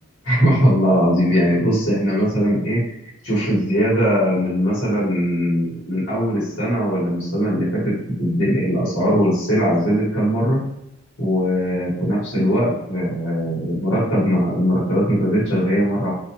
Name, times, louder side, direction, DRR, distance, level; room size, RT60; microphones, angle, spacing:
voice 1, 0.2-2.8 3.2-10.7 11.2-16.1, equal, 65° left, -9 dB, 1.2 m, -20 dB
2.6 x 2.1 x 2.8 m, 0.80 s
head